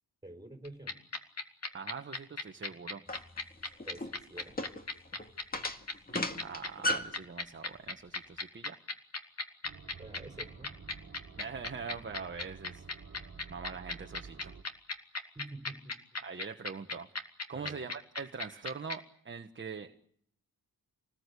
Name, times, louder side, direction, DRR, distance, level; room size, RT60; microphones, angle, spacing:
voice 1, 0.2-0.9 3.9-4.6 10.0-10.8 15.3-15.9 17.5-17.8, right 2 dB, 10° right, 5 dB, 4.6 m, -48 dB
sound 1, 0.7-19.0, left 3 dB, 45° left, 2.6 m, -36 dB
voice 2, 1.7-3.0 6.4-8.8 11.4-12.8 13.5-14.5 16.2-17.1 17.5-20.0, right 5 dB, 30° right, 5 dB, 1.3 m, -43 dB
sound 2, 3.1-7.2, left 1 dB, 25° left, 2.1 m, -35 dB
sound 3, 9.6-14.6, right 5 dB, 50° right, 2.0 m, -51 dB
28.0 x 20.0 x 8.3 m, 0.68 s
wide cardioid pair, 120°, 36 cm